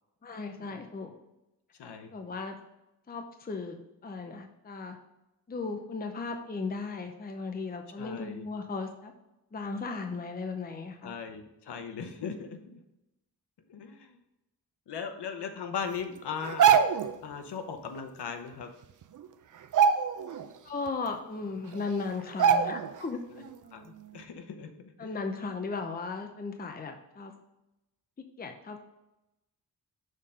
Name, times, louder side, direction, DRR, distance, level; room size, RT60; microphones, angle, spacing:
voice 1, 0.2-1.1 2.1-2.6 3.1-3.8 4.0-5.0 5.5-9.1 9.5-11.2 20.6-23.4 25.0-27.3 28.2-28.9, left 4 dB, 25° left, 5 dB, 0.6 m, -36 dB
voice 2, 1.8-2.1 8.0-8.4 11.0-12.8 13.7-14.2 14.9-16.6 17.2-18.7 23.3-23.5 23.7-25.3, left 6 dB, 85° left, 7 dB, 0.9 m, -39 dB
sound 1, 16.4-17.2 18.6-18.7 19.0-19.3 19.6-20.5 20.9-21.0 21.7-21.8 22.4-23.0 23.4-23.5, right 7 dB, 50° right, 0.5 m, -23 dB
6.5 x 3.7 x 5.3 m, 0.93 s
wide cardioid pair, 100°, 39 cm